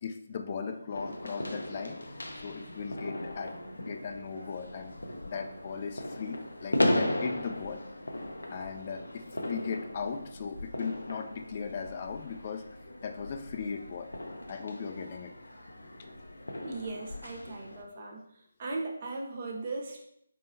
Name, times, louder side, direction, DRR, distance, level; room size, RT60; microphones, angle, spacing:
voice 1, 0.0-2.0 2.3-5.0 5.2-7.8 8.5-12.8 13.0-14.1 14.5-15.3 17.5-17.6 17.9-18.0, left 5 dB, 35° left, 5 dB, 0.4 m, -38 dB
sound 1, 0.9-17.8, left 1 dB, 85° left, 0.6 m, -37 dB
voice 2, 16.6-18.2 18.6-20.1, right 3 dB, 40° right, 0 dB, 0.8 m, -38 dB
4.1 x 3.7 x 2.7 m, 0.75 s
figure-of-eight pair, 155°, 0 cm